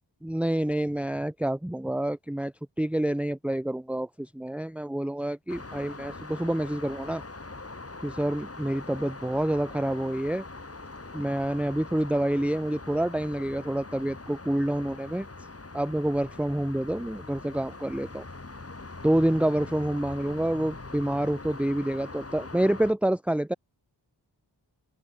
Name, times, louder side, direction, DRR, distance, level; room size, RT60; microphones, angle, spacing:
voice 1, 0.2-7.2 8.0-10.4 11.1-15.3 15.7-18.2 19.0-23.5, right 1 dB, 5° right, 0.8 m, -28 dB
sound 1, 5.5-22.9, left 3 dB, 35° left, 2.5 m, -42 dB
open air
wide cardioid pair, 75°, 43 cm